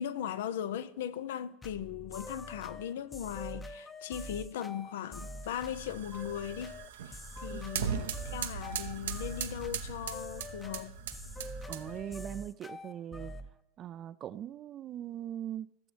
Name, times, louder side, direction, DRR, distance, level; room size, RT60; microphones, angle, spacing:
voice 1, 0.0-6.8 7.0-10.9, left 10 dB, 75° left, 0.4 m, -38 dB
sound 1, 1.6-13.5, left 1 dB, 15° left, 0.6 m, -45 dB
sound 2, 5.4-12.1, right 7 dB, 80° right, 0.7 m, -39 dB
voice 2, 11.7-13.3 13.8-15.9, right 10 dB, 40° right, 0.3 m, -41 dB
15.5 x 6.9 x 3.1 m
hypercardioid pair, 90°, 0 cm